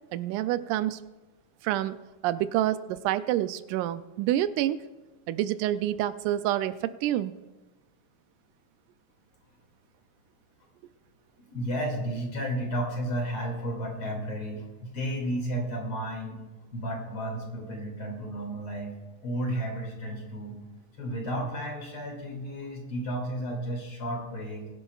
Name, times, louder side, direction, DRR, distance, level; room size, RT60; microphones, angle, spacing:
voice 1, 0.1-1.0 1.6-2.0 2.2-4.8 5.3-7.3, right 13 dB, 85° right, 13 dB, 2.0 m, -28 dB
voice 2, 11.5-16.4 16.7-19.0 19.2-20.6 21.0-24.7, right 1 dB, 45° left, 0 dB, 3.1 m, -33 dB
21.5 x 11.0 x 2.4 m, 1.1 s
omnidirectional pair, 3.6 m